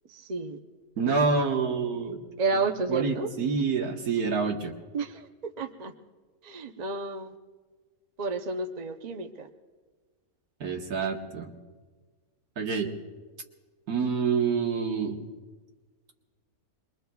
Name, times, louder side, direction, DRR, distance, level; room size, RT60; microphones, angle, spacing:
voice 1, 0.1-0.6 2.4-3.3 4.9-5.9 6.4-7.4 8.2-9.5, right 3 dB, 40° right, 4 dB, 0.7 m, -31 dB
voice 2, 1.0-2.2 2.9-4.7 10.6-11.5 12.6-12.9 13.9-15.2, right 5 dB, 80° right, 2 dB, 1.8 m, -27 dB
27.0 x 22.5 x 2.3 m, 1.4 s
omnidirectional pair, 1.6 m